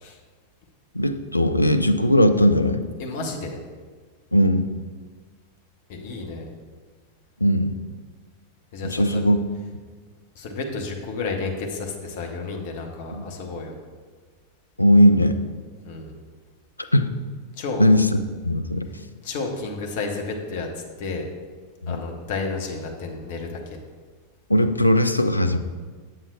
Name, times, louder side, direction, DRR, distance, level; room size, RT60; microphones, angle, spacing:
voice 1, 0.9-2.8 4.3-4.7 7.4-7.7 8.8-9.4 13.1-13.2 14.8-15.4 16.9-17.1 17.8-18.9 21.8-22.0 24.5-25.6, equal, 85° left, 9 dB, 0.3 m, -18 dB
voice 2, 3.0-3.6 5.9-6.5 8.7-9.2 10.4-13.7 15.8-16.1 17.6-17.9 19.2-20.7 21.0-21.3 21.9-23.8, left 3 dB, 50° left, 1 dB, 0.9 m, -31 dB
7.7 x 7.4 x 2.3 m, 1.5 s
figure-of-eight pair, 90°, 0 cm